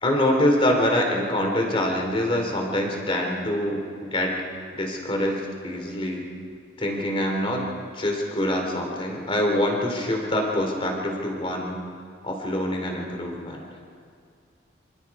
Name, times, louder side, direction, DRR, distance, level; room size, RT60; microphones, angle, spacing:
voice 1, 0.0-4.4 4.7-6.3 6.8-11.8 12.2-13.6, left 1 dB, 30° left, 2 dB, 2.9 m, -25 dB
26.0 x 26.0 x 4.8 m, 2.2 s
head